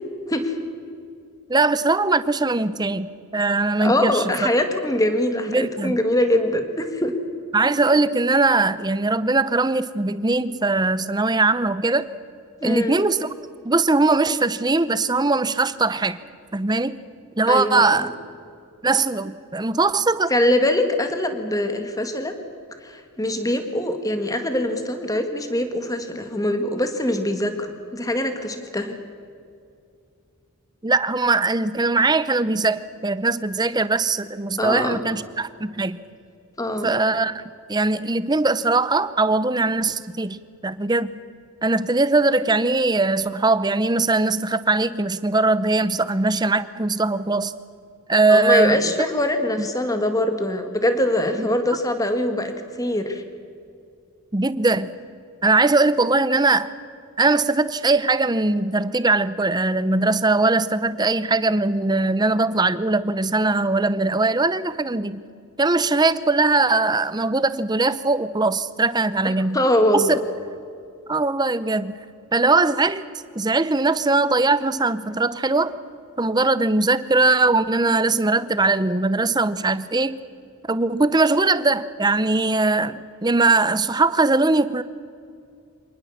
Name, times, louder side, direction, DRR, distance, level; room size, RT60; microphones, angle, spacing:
voice 1, 1.5-3.1 3.3-4.2 5.5-6.0 7.5-12.1 12.6-13.3 13.6-16.2 16.5-17.0 17.4-18.1 18.8-20.3 30.8-36.0 36.8-37.4 37.7-41.2 41.6-47.5 48.1-48.9 49.6-49.7 51.4-51.5 54.3-54.9 55.4-56.7 57.2-65.2 65.6-69.6 69.9-70.2 71.1-72.0 72.3-73.0 73.4-75.7 76.2-80.2 80.7-84.8, right 3 dB, 20° right, 15 dB, 0.6 m, -20 dB
voice 2, 3.8-7.1 12.6-13.0 17.5-18.1 20.3-22.3 22.8-29.0 34.6-35.0 36.6-36.9 48.3-53.2 69.5-70.2, left 1 dB, 15° left, 7 dB, 1.8 m, -23 dB
25.5 x 19.5 x 7.2 m, 2.4 s
head